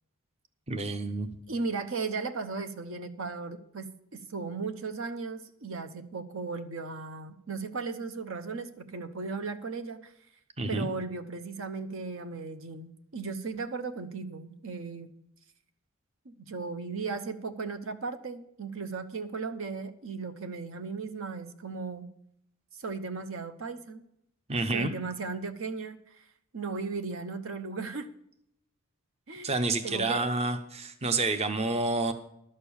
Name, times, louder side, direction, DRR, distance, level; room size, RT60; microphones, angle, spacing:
voice 1, 0.7-1.3 10.6-10.9 24.5-24.9 29.4-32.1, right 2 dB, 30° right, 9 dB, 0.7 m, -29 dB
voice 2, 1.5-10.1 10.7-15.1 16.2-22.1 22.7-24.0 24.7-26.2 26.5-28.1 29.3-29.5 29.8-30.3, right 4 dB, 65° right, 9 dB, 0.8 m, -36 dB
11.5 x 6.6 x 7.1 m, 0.74 s
head